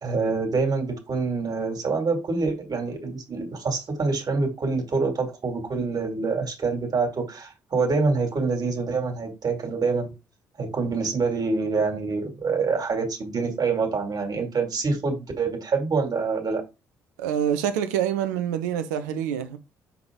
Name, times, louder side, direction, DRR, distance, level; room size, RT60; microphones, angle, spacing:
voice 1, 0.0-10.1 10.6-16.6, right 4 dB, 45° right, 2.5 m, -26 dB
voice 2, 17.2-19.6, right 9 dB, 75° right, 0.8 m, -26 dB
7.1 x 3.9 x 3.7 m
figure-of-eight pair, 45°, 9 cm